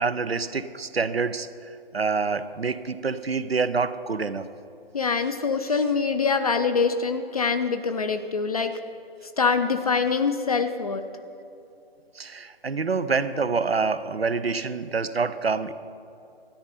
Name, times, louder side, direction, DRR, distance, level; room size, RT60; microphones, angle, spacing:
voice 1, 0.0-4.5 12.2-15.7, right 4 dB, 85° right, 13 dB, 0.6 m, -27 dB
voice 2, 4.9-8.7 9.4-11.0, left 5 dB, 40° left, 8 dB, 0.5 m, -24 dB
13.0 x 9.7 x 5.2 m, 2.7 s
figure-of-eight pair, 140°, 30 cm